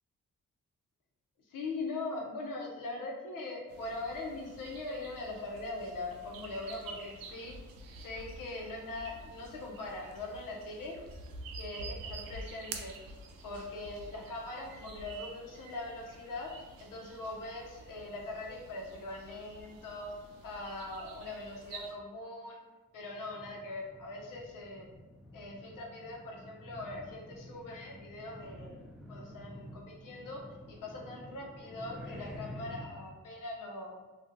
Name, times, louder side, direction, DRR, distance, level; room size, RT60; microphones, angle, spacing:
voice 1, 1.4-7.5 8.0-10.9 11.6-12.9 13.4-16.5 16.8-20.1 20.4-22.6 22.9-24.9 25.3-28.8 29.1-30.4 30.7-33.9, left 2 dB, 65° left, -1 dB, 0.8 m, -41 dB
sound 1, 3.7-21.9, right 3 dB, 80° right, 0.5 m, -48 dB
sound 2, 23.0-32.8, left 1 dB, ahead, 0.3 m, -49 dB
2.4 x 2.4 x 2.6 m, 1.2 s
supercardioid pair, 45°, 34 cm